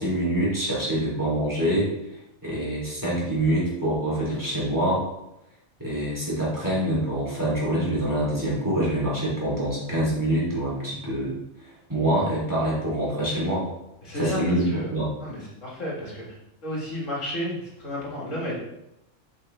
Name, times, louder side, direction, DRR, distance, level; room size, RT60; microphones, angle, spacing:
voice 1, 0.0-1.9 2.4-5.0 5.8-11.3 11.9-13.7 14.1-15.1, right 1 dB, 15° right, -7 dB, 3.1 m, -25 dB
voice 2, 14.0-14.9 15.2-16.2 16.6-18.5, left 1 dB, 70° left, -4 dB, 2.2 m, -32 dB
8.0 x 5.6 x 3.4 m, 0.87 s
omnidirectional pair, 1.4 m